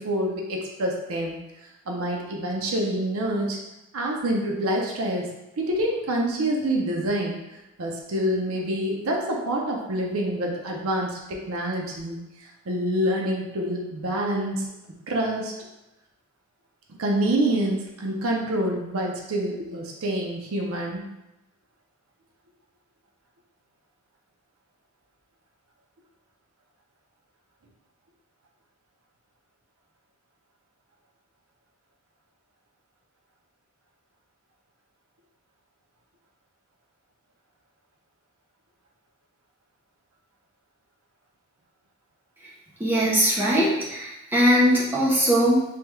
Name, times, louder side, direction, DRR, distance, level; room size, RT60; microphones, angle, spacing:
voice 1, 0.0-1.4 1.9-3.6 3.9-5.3 5.6-7.4 7.8-14.6 15.1-15.5 16.9-21.0, right 1 dB, 70° right, 0 dB, 0.5 m, -27 dB
voice 2, 42.8-45.6, equal, 10° right, -5 dB, 0.4 m, -20 dB
3.4 x 2.2 x 3.0 m, 0.92 s
head